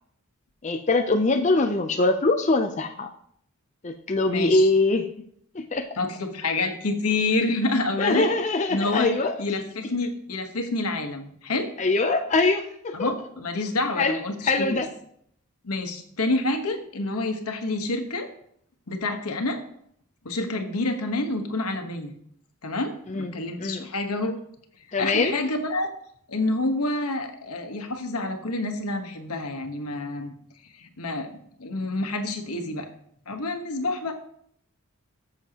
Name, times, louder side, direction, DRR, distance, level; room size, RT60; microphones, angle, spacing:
voice 1, 0.6-3.1 3.8-5.1 5.5-6.0 8.0-9.4 11.8-13.1 14.0-14.2 14.4-14.9 23.1-23.8 24.9-25.4, left 3 dB, 30° left, 5 dB, 0.5 m, -23 dB
voice 2, 4.3-4.7 6.0-8.3 8.7-9.1 9.4-11.7 12.9-14.7 15.6-18.3 18.9-19.6 20.2-22.1 22.6-24.3 25.0-25.9 26.3-30.3 30.7-31.3 31.6-32.9 33.3-34.1, left 2 dB, 85° left, 6 dB, 1.3 m, -28 dB
14.0 x 7.3 x 2.9 m, 0.68 s
head